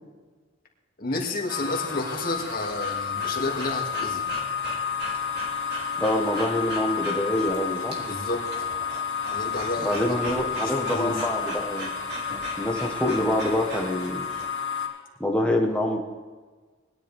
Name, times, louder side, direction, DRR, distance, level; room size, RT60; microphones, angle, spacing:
voice 1, 1.0-4.2 8.0-8.7 9.3-10.1 10.6-11.2, left 2 dB, 45° left, -1 dB, 2.6 m, -31 dB
sound 1, 1.5-14.9, left 6 dB, 70° left, 3.0 m, -31 dB
Breathing / Dog, 2.3-14.5, right 1 dB, 55° right, 3.3 m, -39 dB
voice 2, 6.0-8.0 9.8-11.9 12.5-14.3 15.2-16.0, left 1 dB, 5° left, 0 dB, 1.5 m, -26 dB
20.5 x 11.0 x 3.7 m, 1.4 s
head